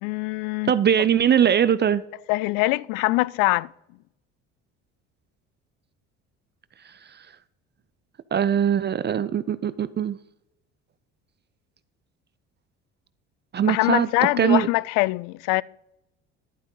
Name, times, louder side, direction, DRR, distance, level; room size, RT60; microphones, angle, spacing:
voice 1, 0.0-0.7 2.3-3.7 13.6-15.6, left 21 dB, 75° left, 0.5 m, -23 dB
voice 2, 0.7-2.0 8.3-10.2 13.5-14.1 14.4-14.7, right 8 dB, 30° right, 0.5 m, -21 dB
11.5 x 8.1 x 3.8 m
supercardioid pair, 80°, 33 cm